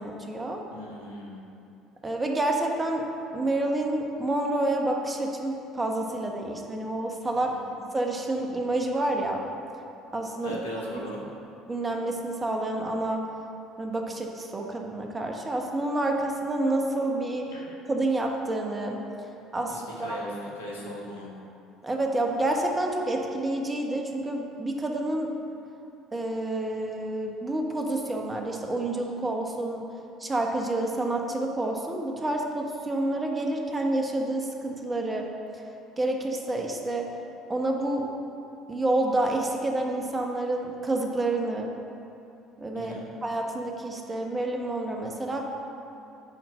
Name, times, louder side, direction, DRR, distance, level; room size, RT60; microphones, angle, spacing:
voice 1, 0.0-0.6 2.0-3.0 3.3-7.5 7.9-9.4 10.1-10.6 10.9-11.0 11.7-13.3 13.8-17.5 17.9-19.0 19.5-20.2 21.8-25.3 26.1-29.9 30.2-35.6 36.0-37.1 37.5-38.0 38.7-41.7 42.6-42.9 43.2-45.4, right 2 dB, 25° right, 1 dB, 1.3 m, -28 dB
voice 2, 0.7-1.4 7.5-7.7 10.4-11.2 17.5-17.6 19.7-21.3 42.7-43.1, equal, 85° left, -4 dB, 1.5 m, -38 dB
9.2 x 4.6 x 6.4 m, 2.8 s
hypercardioid pair, 60°, 0 cm